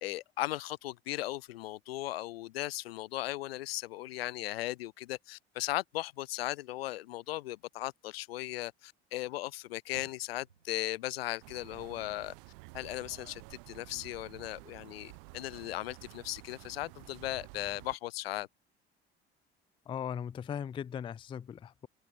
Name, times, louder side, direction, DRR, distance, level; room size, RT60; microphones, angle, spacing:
voice 1, 0.0-12.3 12.7-18.5, left 16 dB, 75° left, 0.6 m, -37 dB
Car, 9.9-13.2 13.6-14.9 15.4-15.5 16.1-16.2, right 6 dB, 85° right, 1.6 m, -61 dB
sound 1, 11.4-18.0, right 31 dB, 65° right, 1.1 m, -51 dB
voice 2, 19.9-21.9, left 8 dB, 15° left, 0.3 m, -38 dB
figure-of-eight pair, 55°, 30 cm